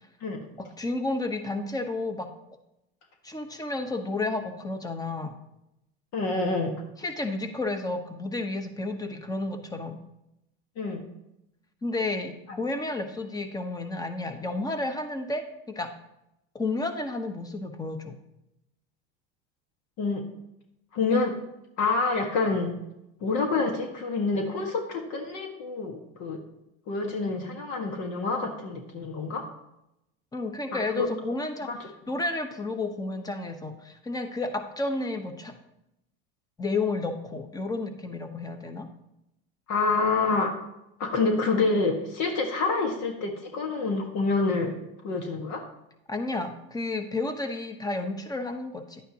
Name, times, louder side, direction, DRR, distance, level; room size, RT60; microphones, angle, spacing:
voice 1, 0.6-2.3 3.2-5.3 7.0-10.0 11.8-16.0 16.5-18.2 30.3-35.6 36.6-38.9 46.1-49.0, left 2 dB, 10° left, 7 dB, 1.0 m, -31 dB
voice 2, 6.1-6.7 10.8-11.0 20.0-20.2 20.9-21.3 21.8-22.7 23.2-26.4 26.9-29.4 30.7-31.1 31.6-31.8 39.7-40.6 41.0-44.7 45.0-45.6, left 3 dB, 60° left, 3 dB, 1.7 m, -27 dB
11.0 x 9.1 x 2.9 m, 0.85 s
supercardioid pair, 115°, 31 cm